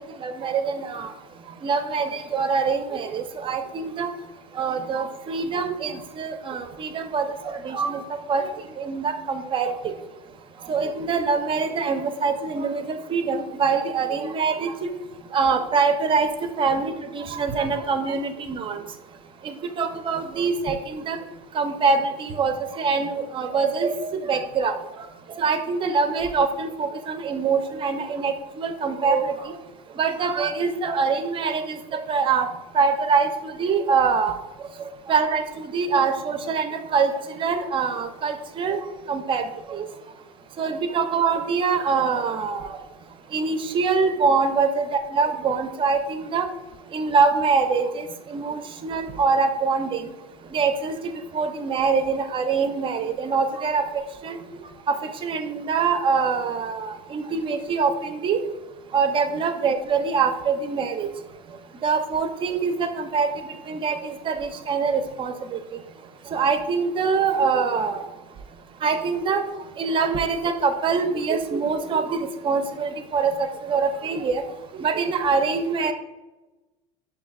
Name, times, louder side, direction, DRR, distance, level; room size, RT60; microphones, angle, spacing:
voice 1, 0.2-1.1 1.6-4.1 4.5-8.0 8.3-8.5 8.8-9.7 10.6-14.9 15.3-16.3 16.6-18.8 19.4-21.2 21.5-24.8 25.4-29.5 30.0-32.5 32.7-34.3 35.1-37.1 37.4-38.8 39.1-39.4 39.7-39.8 40.6-42.8 43.3-46.5 46.9-50.1 50.5-50.9 51.3-53.8 54.2-54.4 54.9-55.0 55.2-58.4 58.9-61.1 61.8-63.3 63.7-65.6 66.3-68.0 68.8-69.4 69.8-74.4 74.7-75.9, right 5 dB, 25° right, 8 dB, 0.4 m, -24 dB
5.9 x 2.1 x 3.5 m, 1.1 s
supercardioid pair, 120°, 20 cm